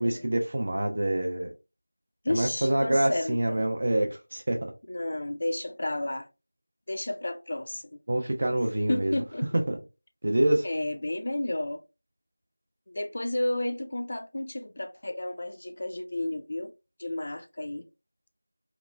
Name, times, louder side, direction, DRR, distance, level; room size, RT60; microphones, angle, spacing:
voice 1, 0.0-1.5 2.3-4.6 8.1-9.2 9.5-9.8 10.2-10.7, right 1 dB, 45° right, 0.4 m, -26 dB
voice 2, 2.2-3.6 4.9-6.3 6.9-7.8 8.9-9.5 10.6-11.8 12.9-16.7 17.0-17.8, left 1 dB, 50° left, 0.3 m, -32 dB
2.9 x 2.0 x 2.3 m
figure-of-eight pair, 175°, 0 cm